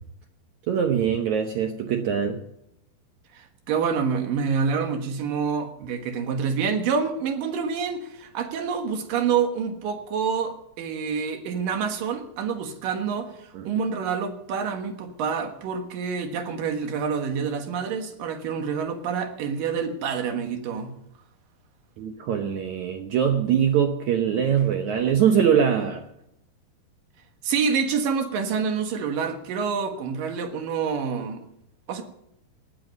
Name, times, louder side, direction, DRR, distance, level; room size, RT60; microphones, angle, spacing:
voice 1, 0.7-2.4 13.5-13.7 22.0-26.1, right 8 dB, 85° right, 1.6 m, -22 dB
voice 2, 3.3-20.9 27.4-31.4 31.9-32.0, right 6 dB, 65° right, 2.9 m, -27 dB
19.0 x 10.5 x 5.3 m
omnidirectional pair, 4.8 m